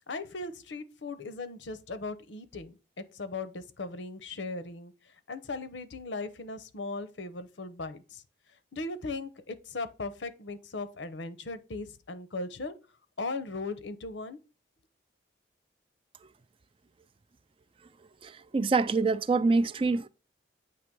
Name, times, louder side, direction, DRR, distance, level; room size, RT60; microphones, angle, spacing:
voice 1, 0.1-4.9 5.3-8.2 8.7-12.8 13.2-14.4, left 3 dB, 75° left, 0.8 m, -38 dB
voice 2, 18.2-20.1, right 3 dB, 30° right, 0.3 m, -26 dB
8.5 x 3.0 x 6.0 m
head